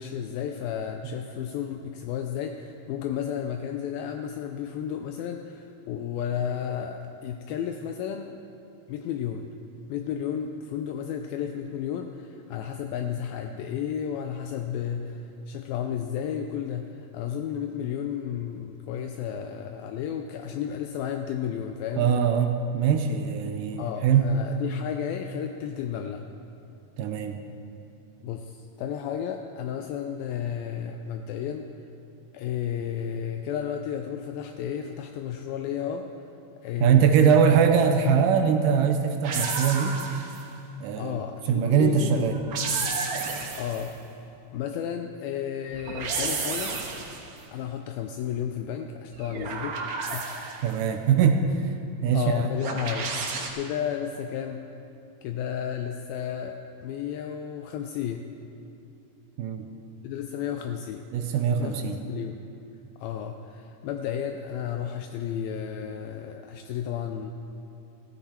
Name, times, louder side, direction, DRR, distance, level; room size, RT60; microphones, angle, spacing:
voice 1, 0.0-8.4 8.9-9.5 9.9-22.1 23.8-26.3 28.2-31.7 32.3-36.1 36.6-37.4 41.0-42.3 43.6-43.9 44.5-46.8 47.5-50.2 52.1-53.1 53.5-54.6 55.2-58.2 60.0-61.1 61.6-62.4 63.0-67.3, left 8 dB, 80° left, 5 dB, 2.3 m, -32 dB
voice 2, 22.0-24.4 27.0-27.4 36.8-40.0 40.8-41.2 41.5-42.4 50.6-51.7 52.0-52.5 59.4-59.7 61.1-62.0, right 7 dB, 75° right, 6 dB, 2.0 m, -22 dB
sound 1, 39.2-40.5 42.3-43.9 45.7-47.3 49.1-50.8 52.6-53.5, right 4 dB, 60° right, 2.1 m, -32 dB
15.0 x 15.0 x 4.3 m, 2.8 s
omnidirectional pair, 4.3 m